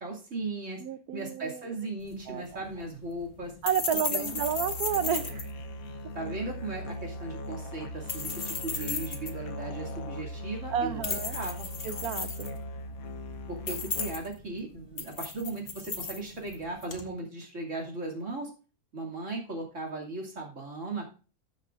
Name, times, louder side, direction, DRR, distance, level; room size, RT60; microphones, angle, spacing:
voice 1, 0.0-0.8 1.1-3.5 4.1-4.4 6.1-10.9 11.3-11.7 13.5-18.5 18.9-21.1, right 2 dB, 55° right, -1 dB, 2.9 m, -37 dB
voice 2, 0.8-1.7 2.3-2.6 3.6-5.5 10.7-11.4 11.8-12.5, right 9 dB, 90° right, 12 dB, 1.2 m, -31 dB
sound 1, 2.0-17.1, left 5 dB, 40° left, 1.3 m, -37 dB
Musical instrument, 4.3-14.4, equal, 75° left, 1.4 m, -39 dB
19.0 x 6.5 x 2.5 m, 0.36 s
omnidirectional pair, 1.5 m